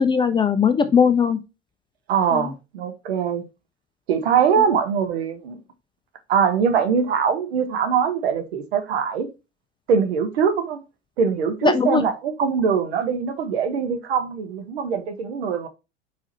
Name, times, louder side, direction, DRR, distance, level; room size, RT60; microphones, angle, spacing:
voice 1, 0.0-1.4 2.3-2.5 11.6-12.0, left 6 dB, 15° left, 0.5 m, -19 dB
voice 2, 2.1-3.4 4.1-5.6 6.3-9.3 9.9-10.8 11.2-15.7, right 6 dB, 60° right, 1.3 m, -22 dB
5.0 x 4.9 x 4.0 m
figure-of-eight pair, 80°, 34 cm